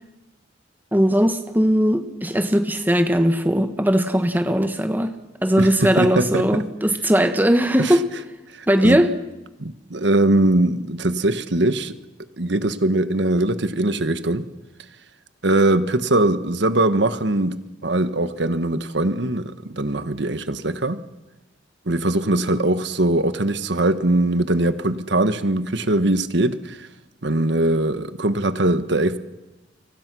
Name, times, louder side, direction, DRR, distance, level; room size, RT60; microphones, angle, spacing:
voice 1, 0.9-5.2 5.4-8.0 8.7-9.1, equal, 10° right, 8 dB, 1.5 m, -19 dB
voice 2, 5.6-6.6 7.8-8.0 8.5-9.0 9.6-11.9 12.4-14.4 15.4-17.6 17.8-21.0 21.9-26.9 27.2-29.2, right 2 dB, 65° right, 11 dB, 1.3 m, -21 dB
29.5 x 25.0 x 6.2 m, 1.1 s
head